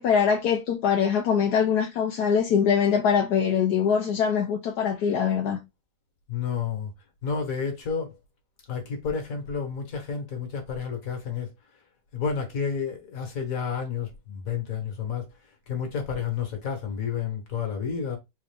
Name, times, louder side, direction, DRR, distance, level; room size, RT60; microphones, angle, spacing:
voice 1, 0.0-5.6, left 7 dB, 80° left, 1.3 m, -23 dB
voice 2, 6.3-6.9 7.2-8.1 8.7-11.5 12.1-15.3 15.7-18.2, left 6 dB, 60° left, 1.8 m, -30 dB
4.3 x 2.5 x 3.3 m
omnidirectional pair, 1.7 m